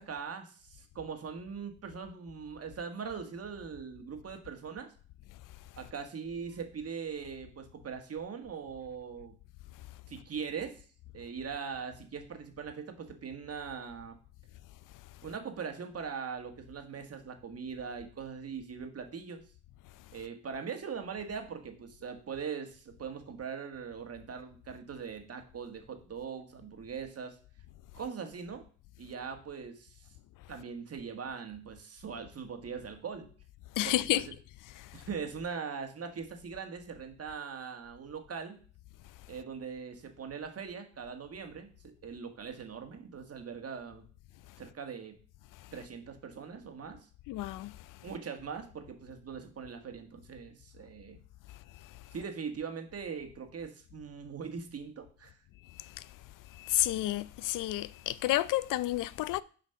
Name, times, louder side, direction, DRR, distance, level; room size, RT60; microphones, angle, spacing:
voice 1, 0.0-4.9 5.8-9.3 10.1-10.8 11.1-14.2 15.2-19.4 20.1-27.3 27.9-28.6 29.0-30.1 30.5-33.3 33.8-34.3 34.9-38.6 39.3-44.0 44.6-45.1 45.7-47.1 48.0-51.2 52.1-55.3, right 6 dB, 50° right, 1.7 m, -41 dB
voice 2, 33.8-34.2 34.8-35.1 47.3-47.8 51.8-52.0 55.7-56.1 56.5-59.4, left 15 dB, 75° left, 0.5 m, -31 dB
6.5 x 5.1 x 5.8 m
cardioid pair, 75°, 32 cm